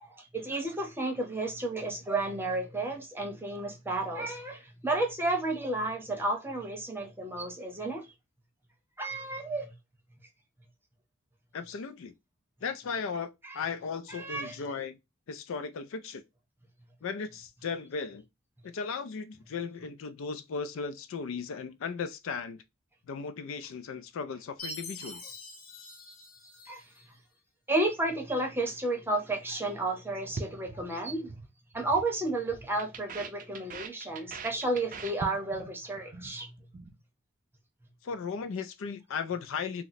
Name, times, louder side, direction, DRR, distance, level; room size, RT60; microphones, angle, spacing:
voice 1, 0.0-8.1 9.0-9.7 13.4-13.6 14.1-14.5 26.7-26.8 27.7-31.3 31.7-36.6, right 2 dB, 10° right, 0.8 m, -32 dB
voice 2, 11.5-12.1 12.6-15.0 15.3-16.2 17.0-18.3 18.6-22.6 23.1-25.4 38.0-39.8, left 5 dB, 65° left, 0.4 m, -36 dB
Chime, 24.6-27.0, left 2 dB, 90° left, 0.9 m, -44 dB
sound 1, 30.4-31.5 31.7-32.1 32.3-35.7 36.0-36.3 36.6-36.9, right 4 dB, 40° right, 0.4 m, -41 dB
2.9 x 2.1 x 3.9 m
head